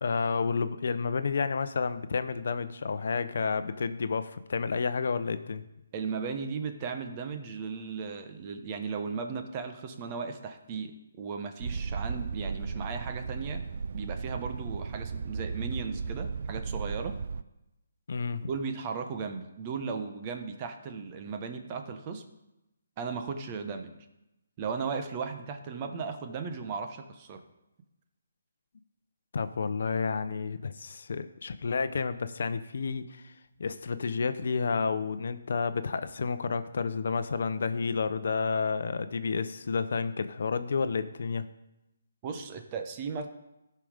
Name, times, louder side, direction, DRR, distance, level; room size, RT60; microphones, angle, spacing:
voice 1, 0.0-5.6 18.1-18.5 23.3-23.4 29.3-33.3 33.6-41.4, left 5 dB, 65° left, 11 dB, 0.7 m, -30 dB
voice 2, 5.9-13.6 13.9-17.2 18.5-22.2 23.0-23.9 24.6-27.4 42.2-43.3, right 5 dB, 30° right, 6 dB, 1.1 m, -36 dB
sound 1, 11.6-17.4, right 5 dB, 60° right, 0.4 m, -35 dB
13.5 x 5.8 x 5.1 m, 0.92 s
hypercardioid pair, 155°, 0 cm